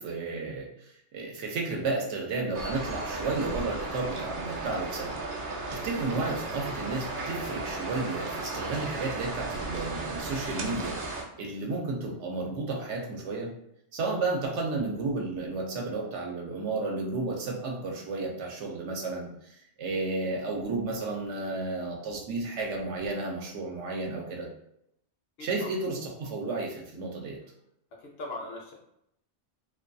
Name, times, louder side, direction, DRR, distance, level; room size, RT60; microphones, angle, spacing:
voice 1, 0.0-5.1 5.7-13.5 13.9-24.5 25.4-27.4, right 3 dB, 75° right, 0 dB, 0.9 m, -32 dB
sound 1, 2.5-11.2, right 2 dB, 60° right, 0.5 m, -35 dB
voice 2, 25.4-25.7 28.0-28.7, left 2 dB, 65° left, -1 dB, 0.8 m, -39 dB
2.5 x 2.2 x 2.5 m, 0.77 s
omnidirectional pair, 1.3 m